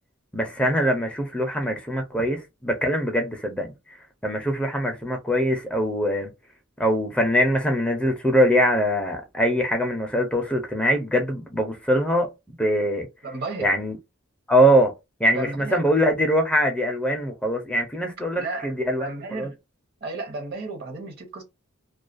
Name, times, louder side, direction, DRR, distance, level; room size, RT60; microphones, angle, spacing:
voice 1, 0.3-2.4 2.6-3.7 4.2-6.3 6.8-12.3 12.6-13.1 13.6-14.0 14.5-14.9 15.2-19.5, equal, 5° left, 0.5 m, -22 dB
voice 2, 13.2-13.7 15.3-15.9 18.3-18.7 19.0-19.6 20.0-21.4, right 3 dB, 50° right, 0.8 m, -33 dB
2.3 x 2.2 x 2.4 m
head